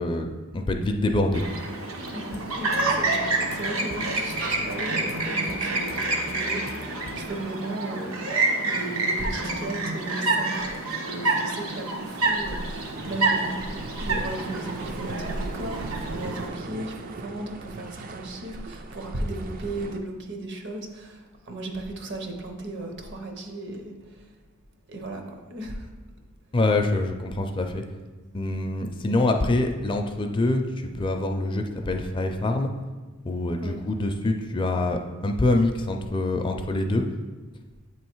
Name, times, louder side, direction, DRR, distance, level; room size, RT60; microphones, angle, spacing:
voice 1, 0.0-1.4 26.5-27.8 28.3-32.7 33.2-37.1, left 2 dB, 25° left, 4 dB, 0.4 m, -25 dB
Chirp tweet, 1.3-16.5, right 2 dB, 85° right, 1.0 m, -28 dB
sound 1, 2.0-7.3, left 3 dB, 80° left, 0.5 m, -43 dB
voice 2, 2.1-3.3 3.5-8.3 8.6-24.3 24.9-25.9 33.6-33.8, right 2 dB, 60° right, 3 dB, 0.8 m, -36 dB
sound 2, 12.2-20.0, right 2 dB, 45° right, 0.4 m, -37 dB
7.9 x 3.1 x 4.5 m, 1.3 s
head